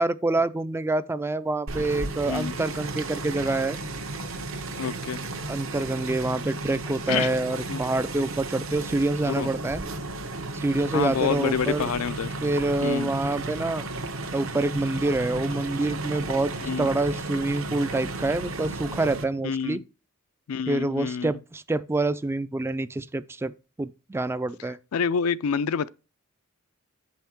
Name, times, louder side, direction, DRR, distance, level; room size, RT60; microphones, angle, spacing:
voice 1, 0.0-3.8 5.5-9.8 10.5-11.9 12.4-13.8 14.3-16.5 16.8-19.8 20.7-23.5 23.8-24.8, right 2 dB, 10° right, 0.3 m, -26 dB
sound 1, 1.7-19.2, right 2 dB, 70° right, 1.2 m, -34 dB
voice 2, 4.8-5.2 7.1-7.3 7.7-7.8 9.2-9.5 10.9-12.3 12.8-13.1 16.6-16.9 19.4-19.8 20.5-21.3 24.7-25.9, left 6 dB, 85° left, 0.4 m, -28 dB
7.2 x 5.6 x 4.5 m
head